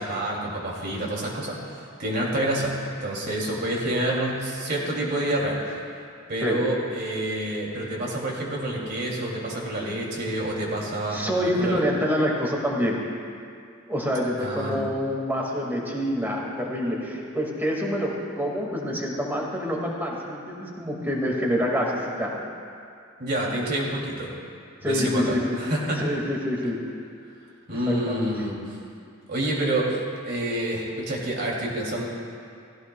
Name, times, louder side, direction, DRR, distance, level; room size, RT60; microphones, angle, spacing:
voice 1, 0.0-5.6 6.3-11.8 14.4-14.8 23.2-24.3 24.8-26.0 27.7-28.6 29.3-30.0 30.2-32.0, right 1 dB, 50° right, -3 dB, 2.6 m, -28 dB
voice 2, 11.1-13.0 13.9-18.1 18.4-22.3 24.8-25.6 26.0-26.8 27.7-28.3, equal, 10° right, -2 dB, 2.0 m, -26 dB
17.5 x 15.5 x 2.3 m, 2.4 s
head